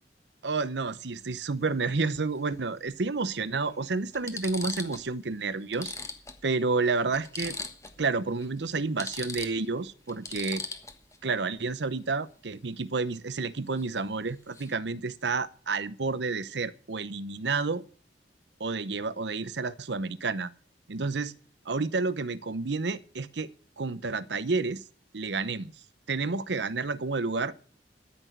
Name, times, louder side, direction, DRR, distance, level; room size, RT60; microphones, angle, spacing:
voice 1, 0.4-5.9 6.4-7.6 8.0-10.6 11.2-17.8 18.6-20.5 20.9-21.3 21.7-23.5 23.8-24.8 25.1-25.7 26.1-27.5, right 4 dB, 75° right, 0.8 m, -30 dB
sound 1, 1.2-1.4 2.9-3.0 3.6-3.7 4.1-5.1 5.4-5.5 5.7-8.0 8.3-8.5 8.8-11.2 13.8-14.0 14.3-14.7, left 3 dB, 20° left, 1.3 m, -39 dB
13.5 x 6.2 x 7.8 m
head